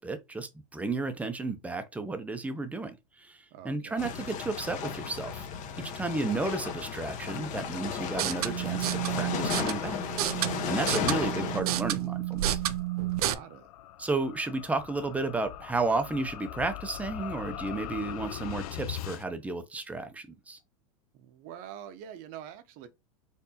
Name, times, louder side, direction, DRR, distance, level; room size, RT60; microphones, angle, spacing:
voice 1, 0.0-5.5 5.8-10.0 10.3-12.6 14.0-20.6, right 3 dB, 5° right, 0.6 m, -33 dB
voice 2, 3.5-4.0 13.2-13.6 21.1-22.9, right 10 dB, 50° right, 0.8 m, -45 dB
Waves on the Rocks, 4.0-11.6, left 7 dB, 40° left, 0.9 m, -34 dB
sound 1, 8.1-13.3, right 13 dB, 75° right, 0.5 m, -31 dB
sound 2, 12.0-19.2, left 11 dB, 75° left, 0.5 m, -41 dB
4.5 x 2.7 x 2.8 m
hypercardioid pair, 115°, 19 cm